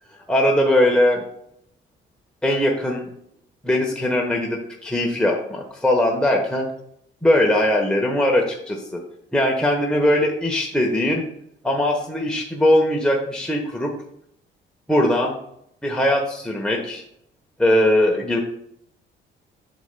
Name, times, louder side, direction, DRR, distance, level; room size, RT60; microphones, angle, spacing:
voice 1, 0.3-1.2 2.4-3.1 3.6-6.7 7.2-9.0 9.3-11.3 11.6-13.9 14.9-15.4 15.8-17.0 17.6-18.4, left 1 dB, 5° left, -1 dB, 1.1 m, -20 dB
8.0 x 6.6 x 2.2 m, 0.72 s
cardioid pair, 90°, 20 cm